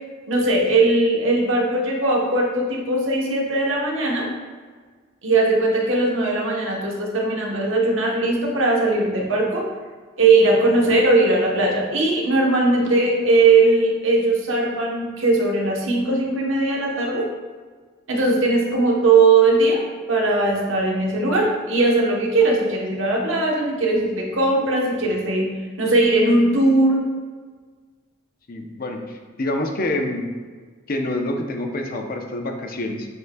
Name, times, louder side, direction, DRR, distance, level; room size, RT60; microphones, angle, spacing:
voice 1, 0.3-4.3 5.2-9.7 10.2-17.3 18.1-25.5 25.8-27.0, right 2 dB, 75° right, -1 dB, 1.1 m, -19 dB
voice 2, 28.5-30.3 30.9-33.1, left 1 dB, 45° left, 3 dB, 0.7 m, -27 dB
8.0 x 5.2 x 2.3 m, 1.5 s
head